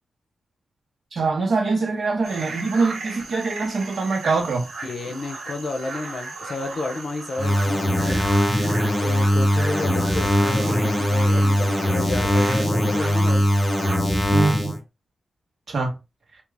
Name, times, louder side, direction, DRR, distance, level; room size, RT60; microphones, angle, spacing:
voice 1, 1.1-4.7 14.3-14.8 15.7-15.9, right 4 dB, 60° right, 1.5 m, -23 dB
sound 1, 2.2-14.0, right 3 dB, 75° right, 1.4 m, -36 dB
voice 2, 4.8-8.2 9.0-13.5, left 3 dB, 55° left, 0.8 m, -31 dB
sound 2, 7.4-14.8, equal, 20° left, 0.8 m, -21 dB
3.7 x 2.9 x 3.4 m
wide cardioid pair, 145°, 0 cm